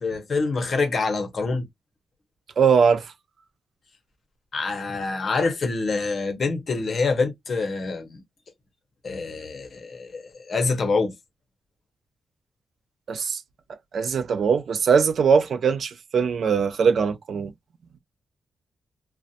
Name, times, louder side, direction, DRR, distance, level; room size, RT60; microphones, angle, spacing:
voice 1, 0.0-1.7 4.5-8.2 9.0-11.1, left 4 dB, 40° left, 0.7 m, -26 dB
voice 2, 2.6-3.1 13.1-13.4 13.9-17.5, right 6 dB, 55° right, 0.3 m, -21 dB
2.4 x 2.1 x 2.6 m
wide cardioid pair, 145°, 0 cm